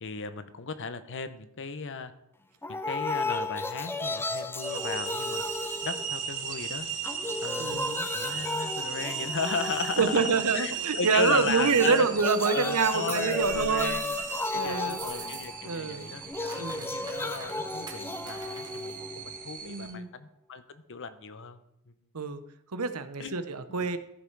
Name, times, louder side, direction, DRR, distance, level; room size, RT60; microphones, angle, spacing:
voice 1, 0.0-2.1 2.7-5.4 5.8-6.9 7.4-12.1 12.4-21.6 23.2-23.4, left 5 dB, 60° left, 11 dB, 0.8 m, -36 dB
sound 1, 2.6-6.6 6.9-10.7 11.6-19.6, left 2 dB, 10° left, 0.5 m, -35 dB
sound 2, 4.6-19.9, right 6 dB, 40° right, 1.3 m, -36 dB
voice 2, 7.6-8.1 10.0-14.0 14.5-15.4 15.7-16.1 16.5-16.9 19.6-20.1 22.1-22.4 22.7-24.0, right 5 dB, 80° right, 11 dB, 0.8 m, -27 dB
sound 3, 14.8-15.8 16.0-19.0, right 4 dB, 20° right, 1.5 m, -46 dB
14.0 x 5.6 x 4.7 m, 0.81 s
head